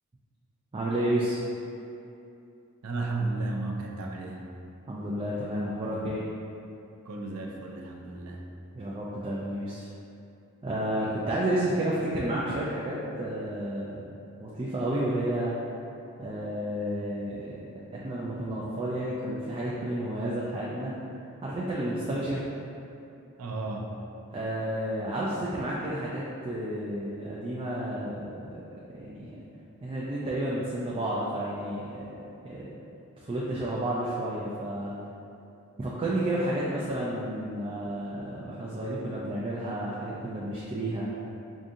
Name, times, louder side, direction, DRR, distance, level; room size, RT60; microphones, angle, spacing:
voice 1, 0.7-1.4 4.9-6.2 8.7-9.8 10.6-14.1 14.4-15.5 16.2-17.6 17.9-20.9 21.4-22.4 24.3-28.6 28.9-29.3 29.8-32.7 33.2-34.9 35.8-41.1, right 1 dB, 25° right, -7 dB, 0.4 m, -31 dB
voice 2, 2.8-4.4 7.0-8.4 11.0-11.1 23.4-23.9, right 2 dB, 85° right, 0 dB, 0.5 m, -33 dB
4.9 x 2.7 x 2.6 m, 2.7 s
head